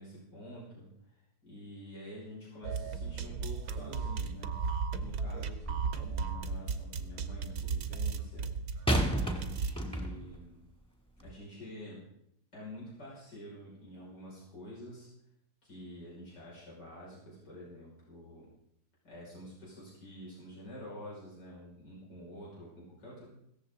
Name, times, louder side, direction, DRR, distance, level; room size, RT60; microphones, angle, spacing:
voice 1, 0.0-8.5 9.0-10.6 11.2-12.1 12.5-15.1 15.6-18.5 19.0-23.3, equal, 90° left, -5 dB, 6.2 m, -48 dB
sound 1, 2.6-9.7, right 5 dB, 65° right, 1.3 m, -35 dB
sound 2, 5.6-6.4 8.9-10.4 11.2-11.3, equal, 5° left, 1.8 m, -32 dB
16.5 x 14.0 x 3.9 m, 0.76 s
omnidirectional pair, 1.8 m